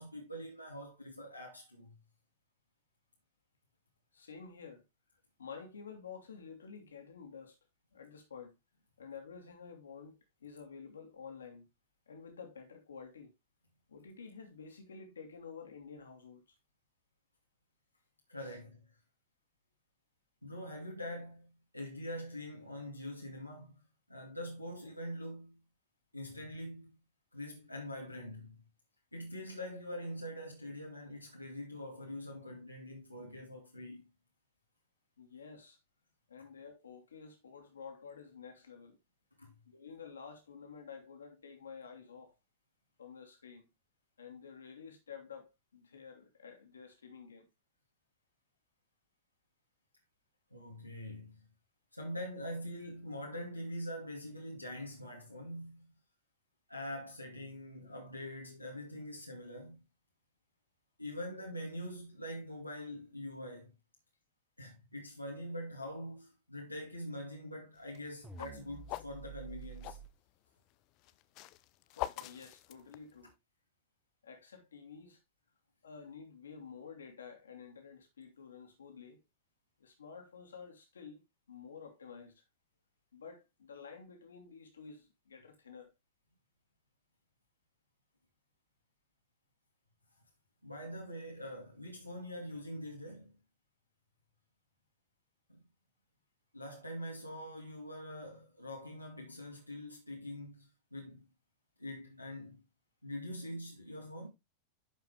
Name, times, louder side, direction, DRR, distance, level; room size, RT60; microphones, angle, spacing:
voice 1, 0.0-2.0 18.3-18.9 20.4-23.8 24.1-25.6 26.1-27.0 27.3-28.5 29.1-34.0 39.4-39.5 50.5-51.4 51.9-55.9 56.7-59.8 61.0-63.7 64.6-70.0 90.6-93.4 95.5-95.6 96.5-101.3 101.8-102.6 103.0-104.3, equal, 90° left, 2.4 m, -44 dB
voice 2, 4.1-4.8 5.4-7.6 7.9-8.5 9.0-11.7 12.1-13.3 13.9-16.4 18.4-18.6 35.2-35.8 36.3-39.0 39.7-42.3 43.0-43.7 44.2-47.5 71.9-73.3 74.2-75.2 75.8-79.2 79.8-81.2 81.5-82.4 83.1-85.9, left 6 dB, 70° left, 2.8 m, -50 dB
sound 1, 67.8-70.1 71.0-73.3, left 16 dB, 40° left, 0.6 m, -43 dB
sound 2, 68.2-70.1, right 6 dB, 10° right, 1.8 m, -49 dB
11.0 x 5.8 x 3.4 m
figure-of-eight pair, 90°, 0 cm